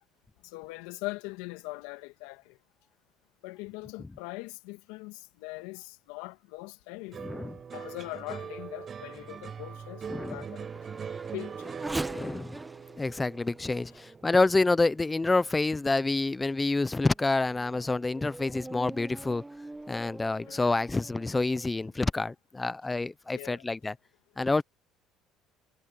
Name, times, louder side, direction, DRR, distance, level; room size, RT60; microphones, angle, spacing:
voice 1, 0.4-2.6 3.4-7.2 7.7-10.7 11.3-11.7 20.4-20.6 23.3-23.6, left 23 dB, 80° left, 2.6 m, -41 dB
sound 1, 7.1-15.6 15.9-16.5, right 7 dB, 40° right, 5.2 m, -42 dB
voice 2, 7.2-7.5 10.1-10.4 12.1-12.6 12.9-19.4 19.9-23.9 24.4-24.6, left 3 dB, 20° left, 0.8 m, -28 dB
Race car auto racing / Accelerating revving vroom, 7.7-15.6 16.2-16.3 16.9-21.7, right 2 dB, 15° right, 1.2 m, -44 dB
hypercardioid pair, 75°, 0 cm